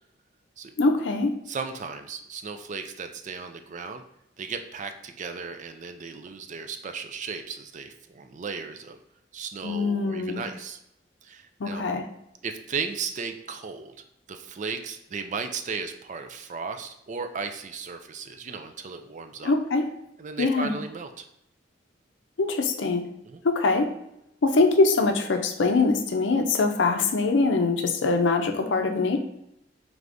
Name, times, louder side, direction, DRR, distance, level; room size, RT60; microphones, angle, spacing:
voice 1, 0.8-1.3 9.6-10.4 11.6-12.1 19.4-19.9 20.4-20.8 22.4-23.1 23.4-23.9 24.4-29.2, left 3 dB, 70° left, 5 dB, 0.5 m, -23 dB
voice 2, 1.5-4.0 4.4-9.0 9.3-10.8 11.2-11.8 12.4-13.9 14.3-19.5 20.2-21.3 23.2-23.4, right 5 dB, 40° right, 7 dB, 0.4 m, -35 dB
4.8 x 3.3 x 2.6 m, 0.81 s
head